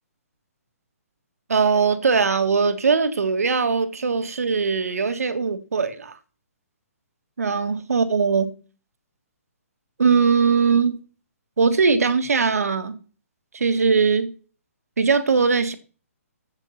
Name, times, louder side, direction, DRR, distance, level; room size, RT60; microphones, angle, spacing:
voice 1, 1.5-6.1 7.4-8.5 10.0-11.0 11.6-13.0 13.5-14.3 15.0-15.7, right 5 dB, 80° right, 1.9 m, -20 dB
14.0 x 8.2 x 5.9 m
hypercardioid pair, 145°, 8 cm